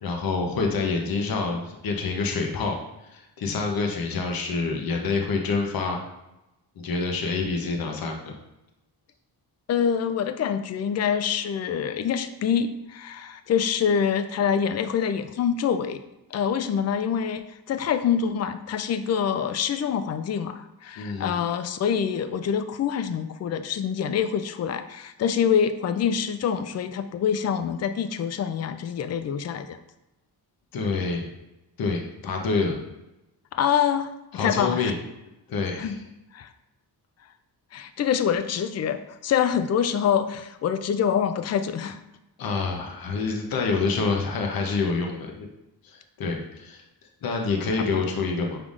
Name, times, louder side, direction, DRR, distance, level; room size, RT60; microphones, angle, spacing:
voice 1, 0.0-2.7 3.1-6.0 6.8-8.3 21.0-21.4 30.7-31.2 31.8-32.8 34.3-34.9 35.5-36.0 42.4-45.5 45.8-46.8 47.2-48.6, left 4 dB, 55° left, 2 dB, 0.8 m, -27 dB
voice 2, 9.7-16.0 16.3-29.8 33.5-34.9 35.8-36.0 36.3-36.5 37.7-42.0 47.9-48.0, left 8 dB, 40° left, 11 dB, 0.4 m, -25 dB
5.3 x 3.4 x 2.5 m, 0.93 s
cardioid pair, 75°, 42 cm